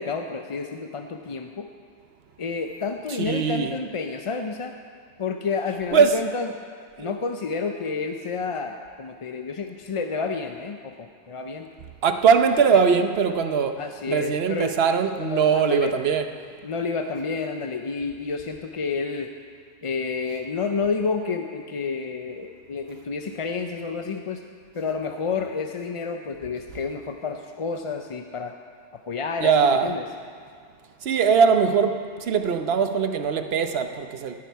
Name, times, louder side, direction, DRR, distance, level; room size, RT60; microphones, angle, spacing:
voice 1, 0.0-1.7 2.4-4.7 5.2-6.6 7.0-11.7 12.7-12.9 13.8-14.7 15.2-15.9 16.6-19.3 19.8-24.4 24.7-28.5 29.1-30.1, left 4 dB, 40° left, 5 dB, 0.4 m, -30 dB
voice 2, 3.2-3.8 5.9-6.2 7.0-7.1 12.0-13.8 14.1-16.3 29.4-29.9 31.0-34.3, right 6 dB, 65° right, 8 dB, 1.0 m, -21 dB
18.5 x 9.7 x 4.7 m, 2.1 s
omnidirectional pair, 1.2 m